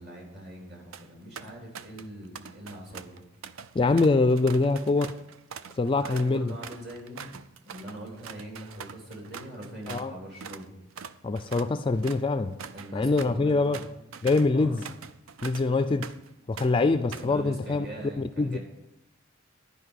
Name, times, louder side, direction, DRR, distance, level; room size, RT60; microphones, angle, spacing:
voice 1, 0.0-3.2 6.0-10.7 12.7-13.9 14.5-14.9 16.7-18.6, right 1 dB, 50° right, 3.8 m, -43 dB
sound 1, 0.7-1.1 1.4-2.1 2.3-10.1 10.4-10.6 10.9-16.3 16.6-17.4, right 6 dB, 75° right, 0.5 m, -43 dB
voice 2, 3.7-5.2 5.8-6.5 9.9-10.1 11.2-12.5 12.9-13.8 14.2-14.8 15.4-16.1 16.5-17.9 18.2-18.6, left 3 dB, 25° left, 0.3 m, -24 dB
11.0 x 5.3 x 8.3 m
head